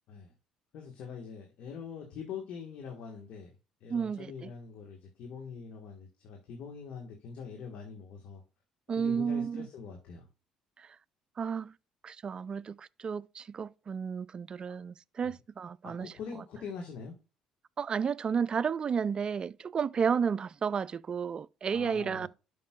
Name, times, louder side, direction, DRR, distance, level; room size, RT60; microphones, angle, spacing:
voice 1, 0.7-3.5 3.8-8.4 9.0-10.3 14.7-14.8 15.2-15.3 15.8-17.1 21.7-22.3, left 6 dB, 65° left, 1.5 m, -43 dB
voice 2, 3.9-4.5 8.9-9.7 10.8-10.9 11.4-11.7 12.0-16.1 17.8-22.3, right 6 dB, 40° right, 0.3 m, -32 dB
11.5 x 5.3 x 2.4 m
hypercardioid pair, 60°, 2 cm